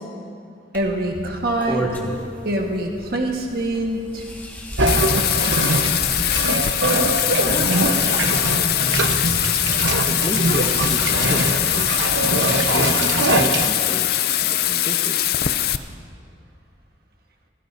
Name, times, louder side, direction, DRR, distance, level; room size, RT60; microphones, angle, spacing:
sound 1, 0.7-12.1, equal, 10° left, 1.7 m, -35 dB
voice 1, 0.7-1.9 2.4-4.2, right 1 dB, 55° right, 1 dB, 1.5 m, -24 dB
sound 2, 4.8-13.7, right 2 dB, 85° right, 1.0 m, -22 dB
Bathtub (filling or washing), 4.9-15.8, left 12 dB, 55° left, 0.5 m, -22 dB
voice 2, 7.3-7.8 10.1-12.0 12.7-14.1 14.4-15.4, equal, 25° left, 4 dB, 1.1 m, -32 dB
29.0 x 17.0 x 2.7 m, 2.3 s
head